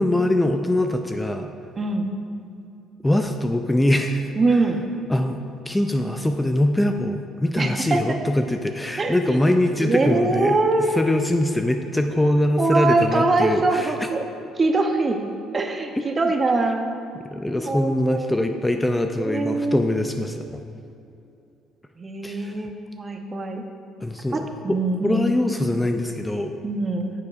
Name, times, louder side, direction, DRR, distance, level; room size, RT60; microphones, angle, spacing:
voice 1, 0.0-1.5 3.0-4.3 5.1-10.6 10.9-13.9 16.0-16.3 17.3-20.6 22.2-22.6 24.0-26.5, left 1 dB, 10° left, 6 dB, 0.4 m, -23 dB
voice 2, 1.8-2.1 4.4-4.8 7.6-8.2 9.0-9.5 9.8-11.0 12.6-14.3 14.6-15.2 15.5-16.9 17.5-18.3 19.2-19.8 22.0-23.6 24.3-25.3 26.6-27.1, right 3 dB, 30° right, 5 dB, 0.7 m, -23 dB
9.4 x 7.0 x 2.4 m, 2.7 s
supercardioid pair, 85°, 0 cm